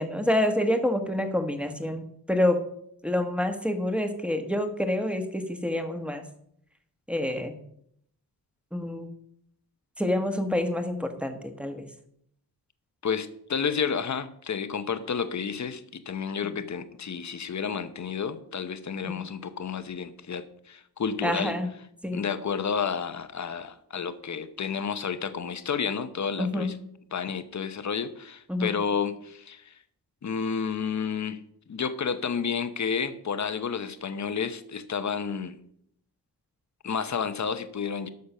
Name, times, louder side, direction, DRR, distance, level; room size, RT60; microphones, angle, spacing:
voice 1, 0.0-2.6 3.0-6.2 7.1-7.6 8.7-9.1 10.0-11.9 19.0-19.2 21.2-21.7 22.0-22.2 26.4-26.8 28.5-28.7, left 1 dB, 5° right, 6 dB, 1.4 m, -27 dB
voice 2, 13.0-21.6 22.1-26.7 27.1-29.7 30.2-31.4 31.7-35.6 36.8-38.1, left 6 dB, 45° left, 11 dB, 0.9 m, -31 dB
12.0 x 6.6 x 5.6 m, 0.71 s
wide cardioid pair, 105°, 39 cm